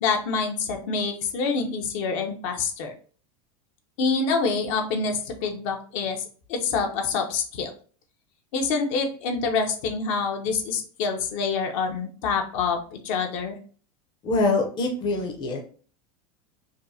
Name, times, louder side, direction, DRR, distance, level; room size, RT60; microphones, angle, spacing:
voice 1, 0.0-2.9 4.0-6.2 6.5-7.7 8.5-13.6, left 4 dB, 60° left, 4 dB, 0.8 m, -26 dB
voice 2, 14.2-15.6, left 2 dB, 25° left, 2 dB, 0.6 m, -24 dB
5.2 x 2.0 x 2.7 m, 0.42 s
supercardioid pair, 150°, 18 cm